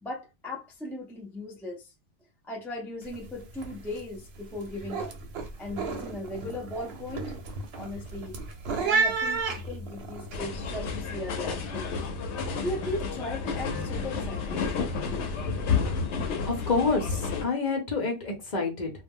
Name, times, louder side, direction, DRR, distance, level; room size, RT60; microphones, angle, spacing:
voice 1, 0.0-1.9 2.4-5.1 5.6-7.3 7.7-8.4 8.7-11.9 12.6-14.6, left 1 dB, 5° left, 0.3 m, -37 dB
sound 1, 3.0-3.3 3.5-4.0 4.4-10.3, right 4 dB, 70° right, 0.9 m, -32 dB
sound 2, 10.3-17.4, left 5 dB, 90° left, 0.9 m, -31 dB
voice 2, 16.4-18.9, left 4 dB, 45° left, 0.8 m, -28 dB
2.2 x 2.0 x 3.5 m
omnidirectional pair, 1.1 m